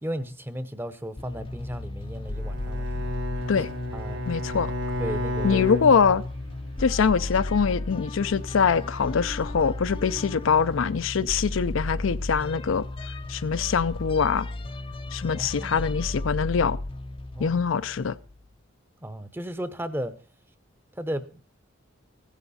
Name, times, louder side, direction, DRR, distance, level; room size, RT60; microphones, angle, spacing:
voice 1, 0.0-3.1 3.9-4.2 5.0-5.8 15.3-15.8 17.3-17.6 19.0-20.1 21.0-21.4, equal, 10° right, 0.7 m, -34 dB
sound 1, 1.2-18.5, left 2 dB, 25° left, 0.5 m, -34 dB
Bowed string instrument, 2.3-6.7, equal, 60° right, 1.2 m, -33 dB
Bowed string instrument 2, 3.3-9.3, left 1 dB, 85° right, 4.8 m, -55 dB
voice 2, 4.3-4.7 5.4-6.2 6.8-12.9 13.3-14.5 15.1-16.8 17.4-18.2, left 6 dB, 75° left, 0.5 m, -23 dB
15.5 x 10.0 x 4.1 m
head